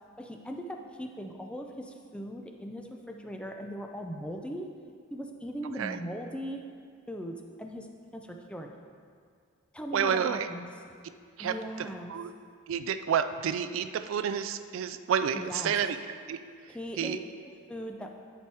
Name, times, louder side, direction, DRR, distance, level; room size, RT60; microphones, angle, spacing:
voice 1, 0.2-4.8 5.1-6.6 7.1-8.7 9.7-10.7 11.4-12.1 15.3-15.7 16.7-18.1, equal, 5° left, 3 dB, 0.4 m, -39 dB
voice 2, 9.9-10.5 11.4-11.5 12.1-12.3 12.7-16.0 16.3-16.4 17.0-17.2, right 7 dB, 70° right, 10 dB, 0.3 m, -29 dB
10.0 x 4.5 x 4.6 m, 2.2 s
head